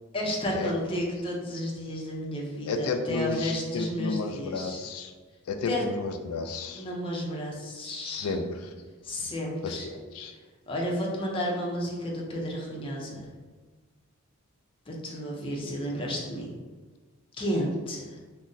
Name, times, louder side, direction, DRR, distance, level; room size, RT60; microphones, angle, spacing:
voice 1, 0.1-4.8 5.7-5.8 6.7-8.4 9.0-9.9 10.7-13.3 14.9-16.5 17.4-18.2, equal, 25° left, -2 dB, 0.5 m, -32 dB
voice 2, 2.7-5.1 5.5-6.8 8.0-8.7 9.6-10.3, left 4 dB, 80° left, 6 dB, 0.4 m, -32 dB
2.6 x 2.0 x 3.7 m, 1.4 s
head